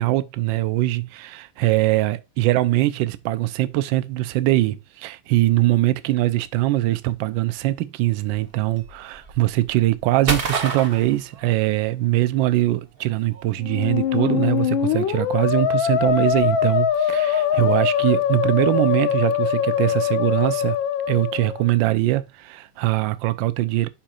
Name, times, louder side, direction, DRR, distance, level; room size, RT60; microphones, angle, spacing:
voice 1, 0.0-20.8 21.1-23.9, right 16 dB, 70° right, 1.2 m, -22 dB
sound 1, 8.2-12.1 12.3-18.1, right 4 dB, 40° right, 0.9 m, -33 dB
Musical instrument, 13.6-21.7, left 8 dB, 70° left, 1.5 m, -22 dB
11.0 x 4.5 x 2.5 m
omnidirectional pair, 2.3 m